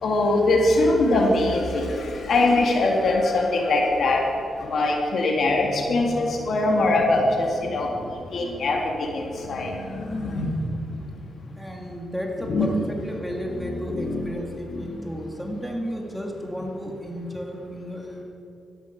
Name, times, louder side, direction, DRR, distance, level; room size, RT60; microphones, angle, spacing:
voice 1, 0.0-4.2 4.6-10.7 12.4-12.7 13.5-15.1, left 2 dB, 65° left, 1 dB, 2.2 m, -23 dB
voice 2, 11.6-18.2, equal, ahead, 0 dB, 2.1 m, -33 dB
12.5 x 10.5 x 5.9 m, 2.6 s
cardioid pair, 85°, 0 cm